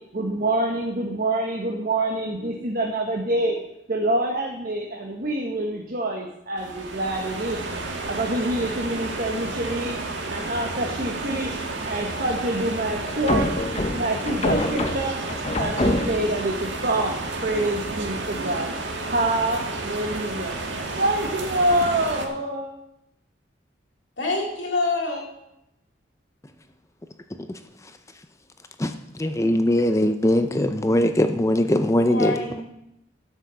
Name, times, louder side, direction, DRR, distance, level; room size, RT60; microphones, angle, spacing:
voice 1, 0.1-3.6 3.9-7.6 8.1-10.0 10.3-11.6 11.8-13.5 13.9-15.2 15.6-18.7 19.1-20.6 21.0-22.7, right 1 dB, 50° right, 1.2 m, -26 dB
sound 1, 6.6-22.3, right 3 dB, 85° right, 1.6 m, -31 dB
sound 2, 13.1-16.4, left 1 dB, 35° left, 0.9 m, -25 dB
voice 2, 24.2-25.2 32.0-32.6, left 3 dB, 70° left, 3.3 m, -26 dB
voice 3, 27.4-27.9 28.8-32.4, left 1 dB, 15° left, 0.5 m, -21 dB
12.0 x 6.2 x 6.8 m
head